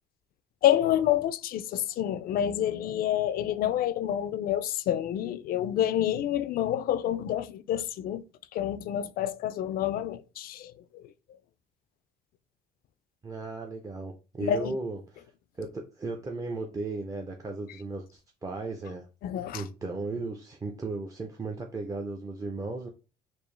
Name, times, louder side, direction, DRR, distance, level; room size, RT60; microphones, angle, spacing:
voice 1, 0.6-8.2 8.5-11.0 14.4-14.8 19.2-19.6, left 11 dB, 60° left, 0.4 m, -28 dB
voice 2, 13.2-15.2 15.6-19.1 19.5-22.9, right 3 dB, 20° right, 0.5 m, -36 dB
4.4 x 2.5 x 3.2 m
cardioid pair, 110°, 17 cm